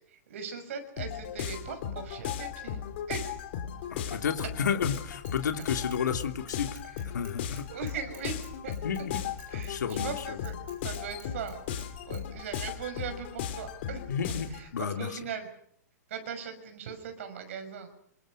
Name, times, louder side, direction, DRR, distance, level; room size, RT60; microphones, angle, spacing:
voice 1, 0.1-2.8 3.1-3.4 7.4-8.7 9.5-10.6 10.8-11.6 12.0-14.0 14.5-15.5 16.1-17.9, right 6 dB, 45° right, 8 dB, 6.2 m, -39 dB
sound 1, 1.0-14.7, left 9 dB, 35° left, 2.9 m, -37 dB
voice 2, 3.9-6.8 7.1-7.6 8.8-9.2 9.7-10.4 14.1-15.2, left 7 dB, 85° left, 6 dB, 2.8 m, -32 dB
Bicycle / Mechanisms, 4.4-5.3 5.6-11.9 12.1-12.2 12.5-12.6, right 9 dB, 20° right, 6.3 m, -54 dB
27.0 x 25.5 x 6.5 m, 0.68 s
hypercardioid pair, 175°, 9 cm